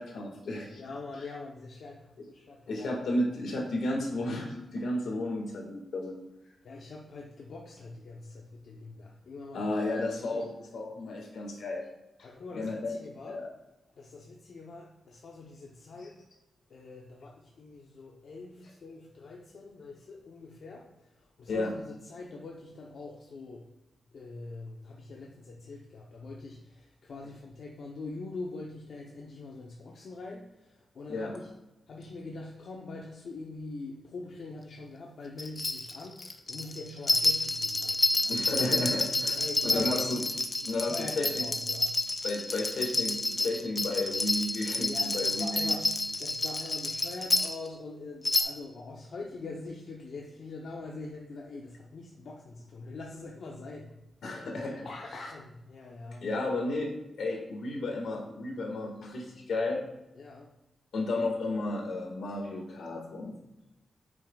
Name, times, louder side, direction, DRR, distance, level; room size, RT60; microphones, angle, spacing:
voice 1, 0.0-0.8 2.7-6.1 9.5-11.9 12.5-12.9 13.2-13.5 16.0-16.1 21.5-21.7 31.1-31.3 38.2-40.2 40.7-41.4 42.2-45.7 54.2-54.9 56.2-56.9 57.2-59.8 60.9-63.4, left 2 dB, 75° left, 1 dB, 1.8 m, -33 dB
voice 2, 0.7-3.0 6.6-9.7 10.3-10.4 12.2-13.4 14.0-16.2 16.7-23.7 24.1-31.5 31.9-38.4 39.4-41.9 44.8-53.9 54.8-56.3 60.1-60.5, left 3 dB, 55° left, -2 dB, 0.8 m, -43 dB
sound 1, 35.4-47.7 48.2-48.4, left 2 dB, 25° left, 0.5 m, -29 dB
8.9 x 6.1 x 2.3 m, 0.95 s
wide cardioid pair, 170°, 0 cm